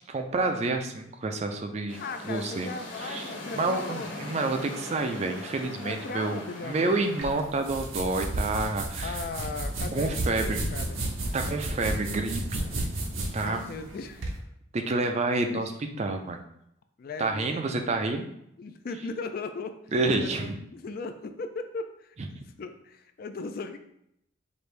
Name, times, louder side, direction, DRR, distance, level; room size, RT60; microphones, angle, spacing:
voice 1, 0.1-2.0 2.2-2.7 3.0-3.2 3.5-9.2 9.9-10.6 11.3-12.6 13.3-13.6 14.7-15.7 16.0-16.4 17.2-18.3 19.9-20.6 22.3-22.5, right 3 dB, 35° right, 6 dB, 0.4 m, -29 dB
sound 1, 1.9-7.3, left 2 dB, 70° left, 1.2 m, -41 dB
voice 2, 2.0-4.4 5.8-7.1 9.0-11.0 13.4-14.3 15.1-15.2 15.5-16.2 17.0-17.8 18.6-19.8 20.2-22.2 22.6-23.8, left 3 dB, 45° left, 8 dB, 0.3 m, -38 dB
sound 2, 7.2-14.4, right 1 dB, 80° right, 0.8 m, -32 dB
4.9 x 2.6 x 3.2 m, 0.77 s
head